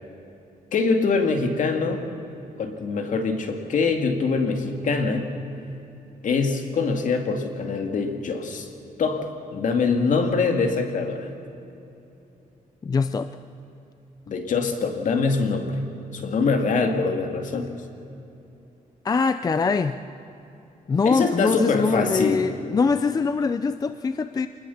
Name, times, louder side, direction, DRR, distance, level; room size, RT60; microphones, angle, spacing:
voice 1, 0.7-2.0 2.6-5.3 6.2-8.7 9.0-11.3 14.3-15.8 16.1-17.7 21.0-22.4, left 4 dB, 60° left, 4 dB, 2.4 m, -24 dB
voice 2, 12.8-13.3 19.0-20.0 20.9-24.5, left 4 dB, 25° left, 11 dB, 0.5 m, -23 dB
25.5 x 20.5 x 7.2 m, 2.9 s
wide cardioid pair, 175°, 15 cm